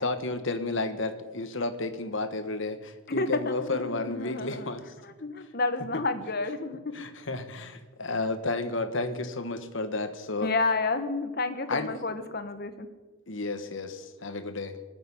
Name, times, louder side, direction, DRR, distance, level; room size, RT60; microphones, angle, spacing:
voice 1, 0.0-4.8 6.9-10.5 11.7-12.0 13.3-14.8, left 3 dB, 65° left, 10 dB, 1.3 m, -32 dB
voice 2, 3.1-4.7 5.0-6.8 10.4-12.9, left 3 dB, 45° left, 10 dB, 1.2 m, -30 dB
19.5 x 6.9 x 9.7 m, 1.3 s
head